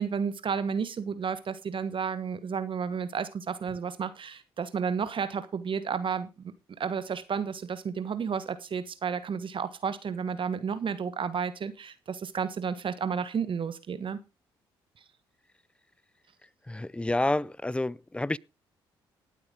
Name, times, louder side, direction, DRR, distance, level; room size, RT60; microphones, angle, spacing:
voice 1, 0.0-6.5 6.8-14.2, right 6 dB, 45° right, 1.3 m, -32 dB
voice 2, 16.7-18.4, left 2 dB, 10° left, 0.5 m, -29 dB
18.5 x 8.2 x 3.8 m
hypercardioid pair, 45°, 12 cm